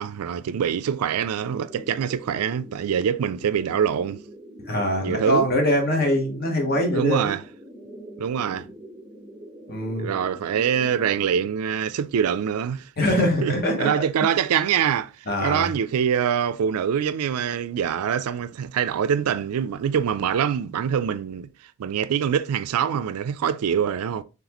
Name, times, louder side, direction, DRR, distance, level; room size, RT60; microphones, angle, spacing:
voice 1, 0.0-4.2 5.0-5.5 6.9-7.4 8.2-8.7 10.0-12.9 13.2-15.1 15.4-21.5 21.8-24.2, right 8 dB, 85° right, 0.3 m, -24 dB
sound 1, 1.4-11.4, right 1 dB, 5° right, 0.6 m, -44 dB
voice 2, 4.7-7.3 9.7-10.1 13.0-13.9 14.2-14.3 15.3-15.7, left 1 dB, 45° left, 1.0 m, -23 dB
4.0 x 3.3 x 2.9 m
head